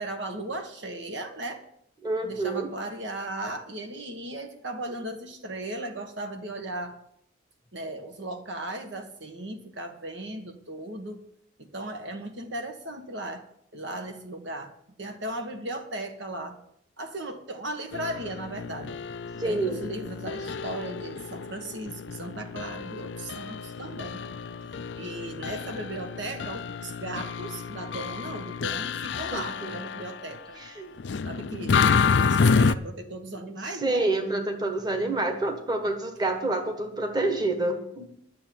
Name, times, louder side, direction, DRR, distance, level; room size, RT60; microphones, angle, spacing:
voice 1, 0.0-1.6 2.2-7.0 7.7-11.2 11.6-13.4 13.7-14.7 15.0-16.6 17.0-19.0 19.4-24.2 24.6-24.7 25.0-30.6 31.2-34.1, right 1 dB, 65° right, 1.5 m, -37 dB
voice 2, 2.0-2.7 19.4-19.9 29.3-29.7 30.6-30.9 33.8-38.1, right 2 dB, 20° right, 1.5 m, -28 dB
sound 1, 17.9-30.4 31.0-32.7, left 5 dB, 65° left, 0.5 m, -29 dB
11.5 x 7.1 x 9.4 m
head